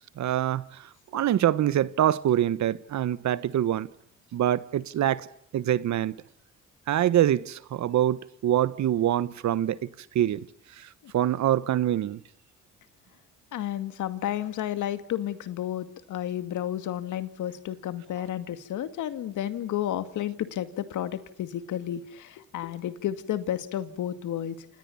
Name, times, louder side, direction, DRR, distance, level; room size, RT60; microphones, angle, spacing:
voice 1, 0.2-3.9 4.3-5.3 5.5-6.2 6.9-9.8 10.1-10.5 10.8-12.2, right 11 dB, 65° right, 1.2 m, -25 dB
voice 2, 13.5-24.7, left 11 dB, 75° left, 2.2 m, -32 dB
28.5 x 27.5 x 7.1 m
cardioid pair, 90°, 30 cm